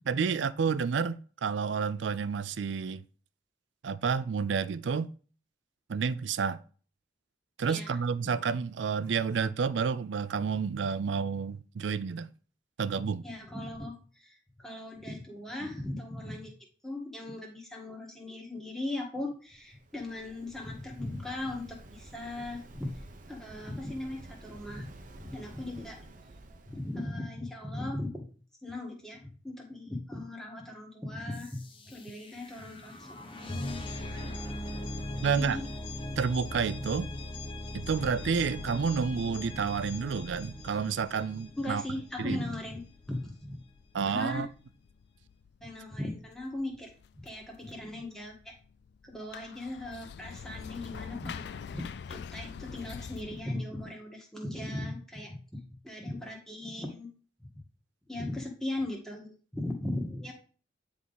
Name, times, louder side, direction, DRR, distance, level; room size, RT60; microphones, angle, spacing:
voice 1, 0.1-3.0 3.8-5.1 5.9-6.6 7.6-12.3 12.8-13.2 35.2-35.6 36.2-37.1 37.7-41.8 42.2-42.4 43.9-44.5, right 5 dB, 80° right, 0.4 m, -30 dB
voice 2, 7.6-8.0 13.2-16.5 16.8-22.9 23.3-24.9 25.2-26.2 26.5-28.2 28.6-31.6 31.9-33.9 34.1-34.3 35.2-35.7 41.6-42.8 43.1-43.6 44.0-44.4 45.6-48.5 49.0-55.4 55.8-57.1 57.4-57.6 58.1-60.3, left 1 dB, 5° left, 1.5 m, -38 dB
Waves surf, 19.5-27.1, right 1 dB, 45° right, 0.7 m, -51 dB
sound 1, 31.3-42.1, left 1 dB, 30° left, 1.0 m, -40 dB
sound 2, 37.9-53.4, left 6 dB, 65° left, 0.3 m, -47 dB
9.4 x 3.5 x 4.0 m
head